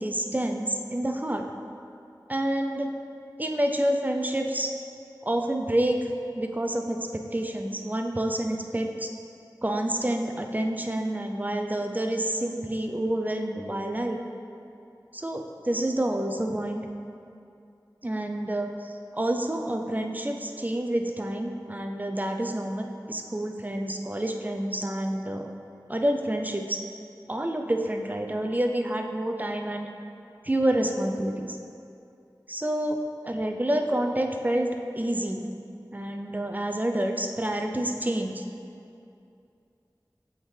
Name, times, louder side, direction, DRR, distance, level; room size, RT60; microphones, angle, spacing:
voice 1, 0.0-1.5 2.3-2.9 3.4-4.7 5.2-9.1 9.6-14.2 15.1-16.9 18.0-25.5 25.9-26.8 27.3-29.9 30.4-31.6 32.5-33.0 33.2-34.7 35.0-35.5 35.9-38.4, right 1 dB, 25° right, 4 dB, 0.4 m, -28 dB
7.9 x 3.6 x 3.2 m, 2.6 s
wide cardioid pair, 45°, 8 cm